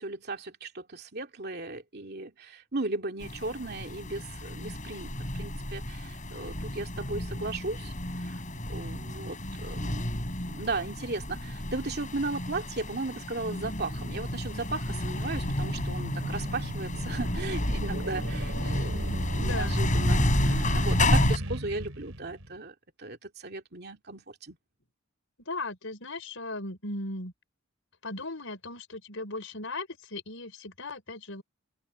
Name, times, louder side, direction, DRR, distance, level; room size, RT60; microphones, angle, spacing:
voice 1, 0.0-8.4 8.7-10.1 10.4-24.6, right 3 dB, 50° right, 2.7 m, -36 dB
sound 1, 3.2-21.4, left 1 dB, 35° left, 7.8 m, -31 dB
sound 2, 14.3-14.4 14.9-22.6, right 1 dB, 80° right, 3.6 m, -36 dB
voice 2, 19.4-19.8 25.5-27.3 28.0-31.4, left 2 dB, 65° left, 5.8 m, -37 dB
open air
head